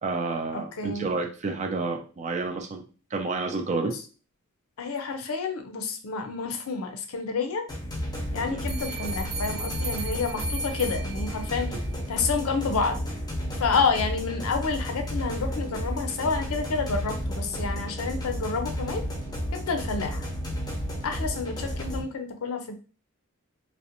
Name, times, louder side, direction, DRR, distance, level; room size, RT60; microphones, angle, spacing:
voice 1, 0.0-2.8 3.1-3.9 8.5-8.6, right 3 dB, 35° right, 2 dB, 0.3 m, -29 dB
voice 2, 0.5-1.1 4.8-7.7 8.3-11.7 12.1-13.0 13.5-19.0 19.5-20.2 21.0-22.7, left 4 dB, 75° left, 6 dB, 0.5 m, -29 dB
sound 1, 7.7-22.0, equal, 20° left, 0.6 m, -32 dB
sound 2, 8.7-11.7, right 2 dB, 65° right, 1.0 m, -36 dB
2.5 x 2.0 x 2.8 m, 0.36 s
head